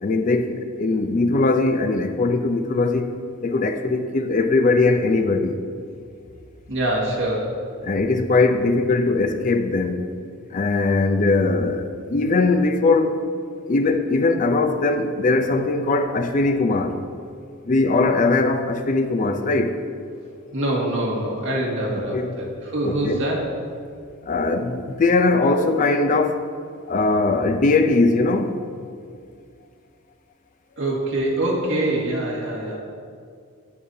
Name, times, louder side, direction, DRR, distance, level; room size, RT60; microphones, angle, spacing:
voice 1, 0.0-3.1 3.4-5.6 7.8-10.1 10.5-13.2 13.7-17.0 17.6-19.8 22.0-22.3 22.8-23.2 24.3-26.5 26.9-28.6, left 3 dB, 40° left, 0.5 m, -20 dB
voice 2, 6.7-7.5 20.2-23.4 30.8-32.8, right 1 dB, 65° right, 1.9 m, -24 dB
9.4 x 8.6 x 2.7 m
head